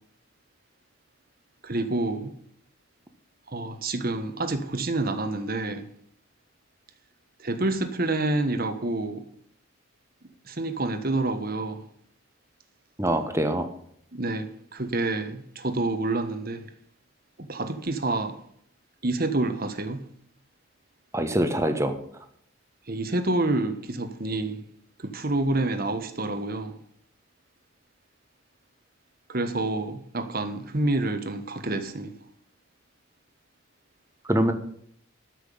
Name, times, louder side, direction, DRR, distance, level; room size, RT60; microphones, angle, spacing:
voice 1, 1.6-2.3 3.5-5.9 7.4-9.2 10.5-11.8 14.1-16.7 17.4-18.4 19.0-20.1 22.9-24.6 25.0-26.8 29.3-32.1, right 2 dB, 45° right, 1.3 m, -28 dB
voice 2, 13.0-13.7 21.1-22.0 34.3-34.5, right 1 dB, 15° right, 1.3 m, -24 dB
13.5 x 6.2 x 8.7 m
head